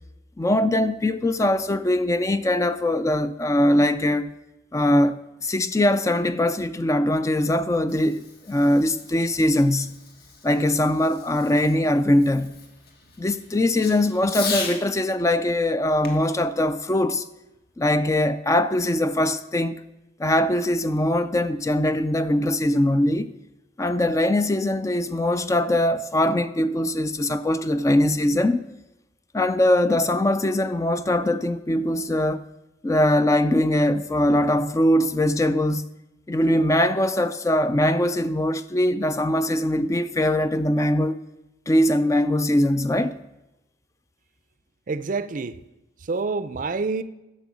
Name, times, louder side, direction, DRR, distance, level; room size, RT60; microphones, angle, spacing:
voice 1, 0.4-4.3 4.7-10.0 10.4-12.6 13.2-17.3 17.8-19.9 20.2-23.3 23.8-28.7 29.3-32.4 32.8-35.9 36.3-41.2 41.7-43.2, left 1 dB, 15° left, 0.3 m, -22 dB
Fireworks, 7.7-14.9 16.0-17.7, left 4 dB, 55° left, 1.5 m, -38 dB
voice 2, 44.9-45.6 46.0-47.0, right 4 dB, 45° right, 0.5 m, -27 dB
10.5 x 7.0 x 6.1 m
head